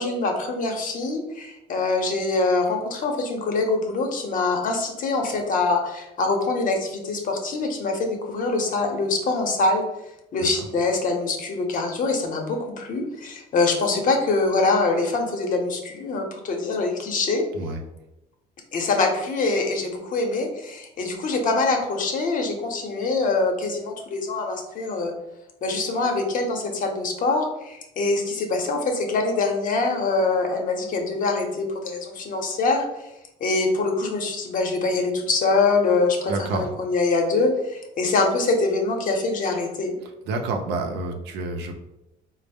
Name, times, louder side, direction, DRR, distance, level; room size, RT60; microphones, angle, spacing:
voice 1, 0.0-9.8 10.3-17.4 18.7-25.1 25.6-32.9 33.4-40.0, left 3 dB, 50° left, 3 dB, 0.8 m, -24 dB
voice 2, 36.3-36.7 40.3-41.7, right 3 dB, 85° right, 3 dB, 0.6 m, -29 dB
4.1 x 2.0 x 3.4 m, 0.91 s
cardioid pair, 110°, 17 cm